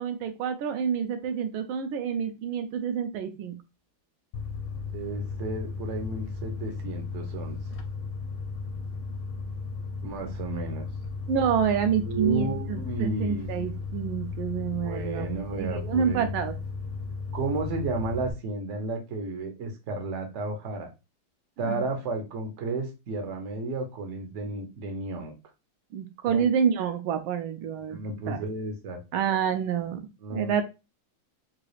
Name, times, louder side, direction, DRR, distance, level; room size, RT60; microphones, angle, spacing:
voice 1, 0.0-3.5 11.3-16.6 21.6-21.8 25.9-28.0 28.3-28.4 29.1-30.1 30.3-30.6, right 7 dB, 80° right, 7 dB, 1.3 m, -28 dB
sound 1, 4.3-18.3, left 4 dB, 80° left, 1.5 m, -35 dB
voice 2, 4.9-7.6 10.0-10.9 12.1-13.5 14.7-16.3 17.3-20.9 21.6-25.3 26.3-26.4 27.9-29.0 30.2-30.5, right 2 dB, 60° right, 3 dB, 0.7 m, -32 dB
3.8 x 2.3 x 3.1 m, 0.27 s
omnidirectional pair, 2.3 m